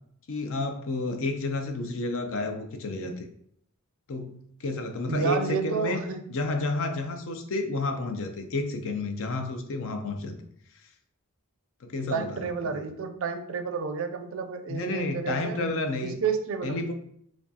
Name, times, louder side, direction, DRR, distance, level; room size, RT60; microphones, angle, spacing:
voice 1, 0.3-3.3 4.1-6.0 6.3-10.4 11.8-12.8 14.7-16.2 16.6-16.9, left 2 dB, 65° left, 6 dB, 0.5 m, -31 dB
voice 2, 5.1-6.2 12.1-15.6 16.0-16.8, right 5 dB, 65° right, 8 dB, 0.4 m, -30 dB
4.6 x 2.3 x 2.7 m, 0.70 s
head